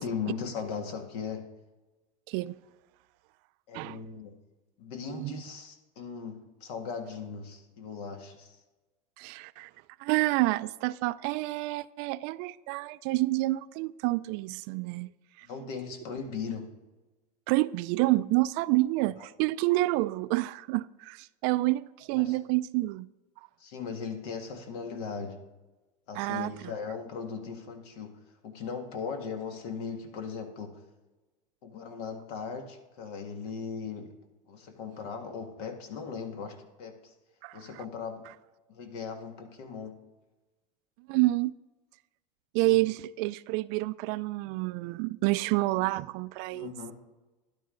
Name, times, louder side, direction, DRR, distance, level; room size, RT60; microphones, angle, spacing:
voice 1, 0.0-1.5 3.7-4.3 4.8-8.6 15.4-16.7 19.2-19.3 22.2-22.3 23.6-25.4 26.1-30.8 31.6-34.1 34.5-37.1 37.5-38.3 38.7-40.0 42.6-42.8 46.5-46.9, left 6 dB, 70° left, 1.8 m, -38 dB
voice 2, 5.1-5.4 9.2-9.7 10.0-15.1 15.4-15.5 17.5-23.1 26.2-26.5 37.4-37.6 41.1-41.5 42.5-46.7, right 19 dB, 50° right, 0.4 m, -28 dB
12.5 x 11.0 x 3.8 m
supercardioid pair, 120°, 21 cm